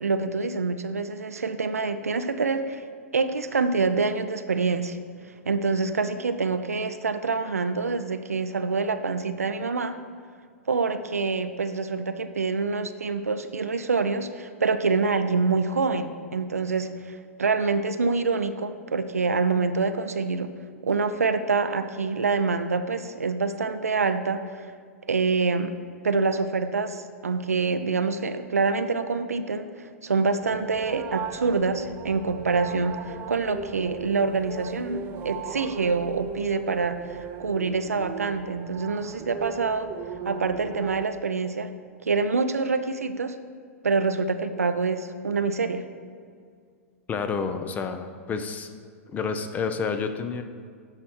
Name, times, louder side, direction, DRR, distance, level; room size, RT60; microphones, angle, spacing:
voice 1, 0.0-2.8 3.1-5.0 5.5-10.0 10.7-20.5 20.8-24.7 25.1-25.7 26.0-37.0 37.4-39.9 40.2-41.7 42.0-43.4 43.8-45.8, right 4 dB, 85° right, 10 dB, 0.5 m, -26 dB
sound 1, 30.4-41.1, right 7 dB, 25° right, 0.5 m, -37 dB
voice 2, 47.1-48.7 49.1-50.4, left 5 dB, 20° left, 8 dB, 0.6 m, -29 dB
11.5 x 4.3 x 4.4 m, 2.2 s
figure-of-eight pair, 110°, 8 cm